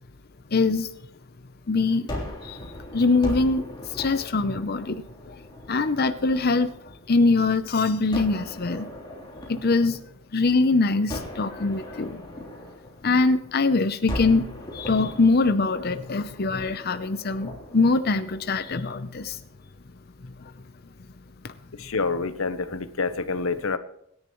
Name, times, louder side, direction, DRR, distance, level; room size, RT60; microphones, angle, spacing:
voice 1, 0.5-0.9 1.7-2.1 2.4-2.7 2.9-5.4 5.7-8.9 9.5-10.0 10.3-12.2 13.0-19.4 20.2-20.5 21.4-21.5, left 3 dB, 50° left, 10 dB, 0.6 m, -23 dB
Gunshot gunfire, 2.1-7.2 8.1-10.5 11.1-13.6 14.1-19.3, left 1 dB, 20° left, 3.5 m, -39 dB
voice 2, 21.7-23.8, left 4 dB, 90° left, 11 dB, 0.9 m, -27 dB
25.5 x 10.5 x 3.1 m, 0.75 s
head